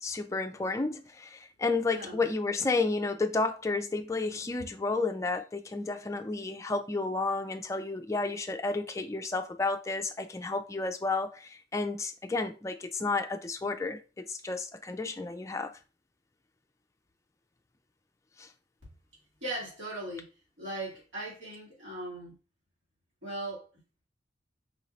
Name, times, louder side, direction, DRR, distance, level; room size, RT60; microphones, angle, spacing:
voice 1, 0.0-15.7 18.4-18.5, left 3 dB, 15° left, 0.4 m, -31 dB
voice 2, 1.9-2.2 19.4-20.2 20.6-22.4 23.2-23.7, right 1 dB, 90° right, 2.2 m, -38 dB
4.8 x 2.6 x 3.1 m
head